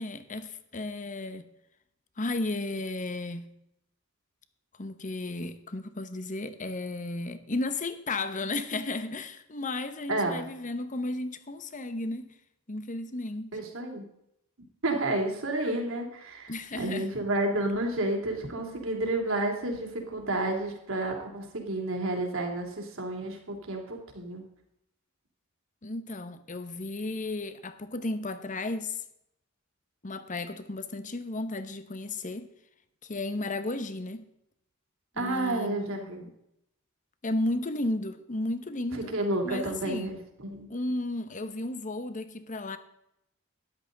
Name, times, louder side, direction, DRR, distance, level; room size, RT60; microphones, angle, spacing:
voice 1, 0.0-1.5 2.2-3.5 4.8-12.3 12.7-13.6 16.5-17.1 25.8-29.0 30.0-32.5 33.0-34.3 35.2-36.3 37.2-39.1 39.4-40.1 40.7-42.8, left 2 dB, 40° left, 1.0 m, -34 dB
voice 2, 10.1-10.4 13.5-14.1 14.8-24.4 35.2-36.3 38.9-40.7, right 2 dB, 70° right, 3.0 m, -31 dB
13.0 x 11.0 x 4.0 m
head